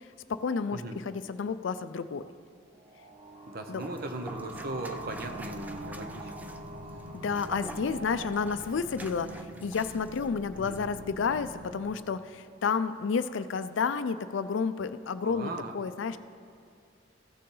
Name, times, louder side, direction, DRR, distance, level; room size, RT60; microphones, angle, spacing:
voice 1, 0.3-2.2 3.7-3.8 7.1-16.2, left 5 dB, 70° left, 12 dB, 0.4 m, -31 dB
sound 1, 2.7-10.1, right 2 dB, 35° right, 1.1 m, -45 dB
voice 2, 3.5-6.6 10.6-10.8 15.2-15.7, right 2 dB, 50° right, 6 dB, 0.8 m, -38 dB
sound 2, 3.8-10.3 10.6-10.8, right 1 dB, 10° right, 0.4 m, -48 dB
sound 3, 4.3-11.8, equal, 90° right, 1.0 m, -47 dB
15.5 x 6.7 x 3.9 m, 2.5 s
head